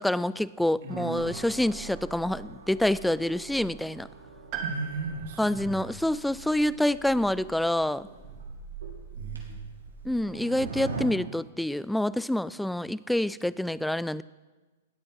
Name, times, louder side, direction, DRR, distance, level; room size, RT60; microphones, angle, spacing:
voice 1, 0.0-4.1 5.4-8.1 10.1-14.2, left 1 dB, 5° left, 19 dB, 0.3 m, -27 dB
voice 2, 0.8-1.4 4.6-5.8 9.2-9.5, right 4 dB, 60° right, 1 dB, 2.6 m, -36 dB
sound 1, 0.9-11.0, right 5 dB, 85° right, 2.6 m, -42 dB
Piano, 4.5-8.4 8.7-8.8 9.9-10.0, right 6 dB, 40° right, 1.8 m, -42 dB
19.5 x 8.6 x 4.6 m, 1.3 s
hypercardioid pair, 110°, 0 cm